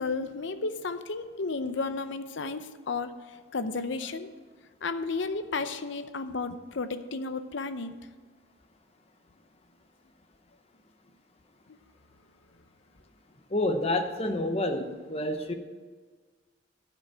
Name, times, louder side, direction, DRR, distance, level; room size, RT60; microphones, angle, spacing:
voice 1, 0.0-4.3 4.8-7.9 11.7-11.8, left 3 dB, 60° left, 10 dB, 0.7 m, -33 dB
voice 2, 13.5-15.5, left 1 dB, 30° left, 6 dB, 0.8 m, -28 dB
12.0 x 5.3 x 7.4 m, 1.4 s
head